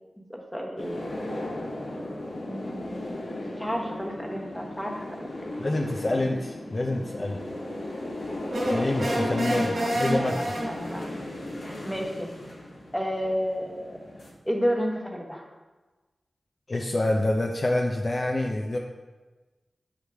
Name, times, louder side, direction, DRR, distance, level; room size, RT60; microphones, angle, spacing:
voice 1, 0.3-1.0 2.5-3.0 3.6-5.5 9.2-10.4 10.7-11.0 11.6-12.3 12.9-14.0 14.5-15.4, equal, 5° left, 0 dB, 1.0 m, -32 dB
sound 1, 0.8-14.3, left 1 dB, 75° left, 1.4 m, -36 dB
voice 2, 5.6-7.4 8.6-10.6 16.7-18.8, left 1 dB, 35° left, 1 dB, 0.5 m, -27 dB
sound 2, 8.5-11.1, right 1 dB, 80° right, 2.0 m, -28 dB
8.1 x 4.9 x 3.4 m, 1.2 s
wide cardioid pair, 110°, 0 cm